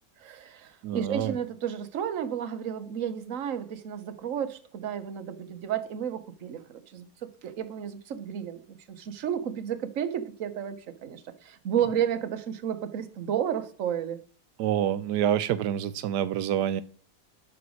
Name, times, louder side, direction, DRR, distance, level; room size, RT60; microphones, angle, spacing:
voice 1, 0.2-14.2, right 9 dB, 55° right, 1.3 m, -32 dB
voice 2, 0.8-1.3 14.6-16.8, right 10 dB, 85° right, 1.2 m, -27 dB
11.0 x 6.1 x 6.3 m
omnidirectional pair, 1.7 m